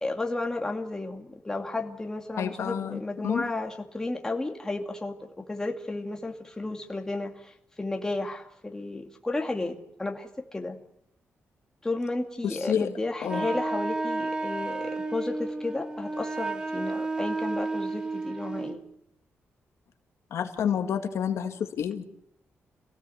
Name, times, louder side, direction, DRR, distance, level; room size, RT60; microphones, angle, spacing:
voice 1, 0.0-10.8 11.8-18.8, left 2 dB, 15° left, 2 dB, 2.4 m, -33 dB
voice 2, 2.4-3.5 12.4-12.9 13.2-13.5 20.3-22.0, left 8 dB, 80° left, 5 dB, 2.1 m, -29 dB
Wind instrument woodwind instrument, 13.2-18.8, right 3 dB, 15° right, 1.6 m, -32 dB
27.5 x 17.5 x 7.9 m, 0.76 s
wide cardioid pair, 145°, 5 cm